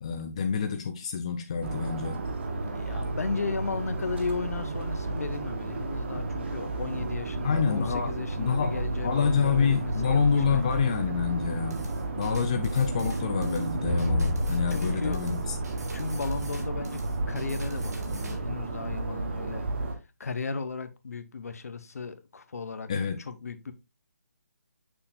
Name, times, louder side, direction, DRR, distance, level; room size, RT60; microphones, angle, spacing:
voice 1, 0.0-2.2 7.4-8.1 8.4-11.9 12.2-15.6 22.9-23.2, left 6 dB, 20° left, 0.4 m, -27 dB
sound 1, 1.6-19.9, right 2 dB, 40° right, 1.1 m, -32 dB
voice 2, 2.4-10.8 14.7-15.3 15.9-22.9 23.3-23.7, left 4 dB, 60° left, 0.9 m, -35 dB
sound 2, 11.7-18.4, right 2 dB, 70° right, 2.2 m, -47 dB
sound 3, 13.9-16.6, left 2 dB, 5° right, 2.4 m, -30 dB
6.7 x 5.7 x 2.5 m
hypercardioid pair, 170°, 9 cm